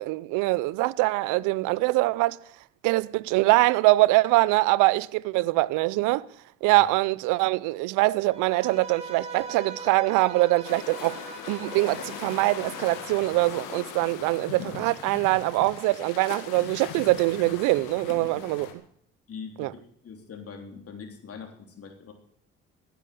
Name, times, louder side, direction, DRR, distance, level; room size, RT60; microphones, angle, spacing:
voice 1, 0.0-2.4 2.8-6.3 6.6-11.2 11.5-18.7 19.6-19.7, right 20 dB, 80° right, 0.6 m, -23 dB
Bowed string instrument, 8.3-13.3, right 4 dB, 20° right, 4.2 m, -41 dB
sound 1, 10.6-18.7, left 9 dB, 80° left, 2.0 m, -40 dB
voice 2, 19.3-22.1, left 5 dB, 50° left, 3.4 m, -42 dB
16.5 x 10.5 x 6.8 m
supercardioid pair, 70°, 31 cm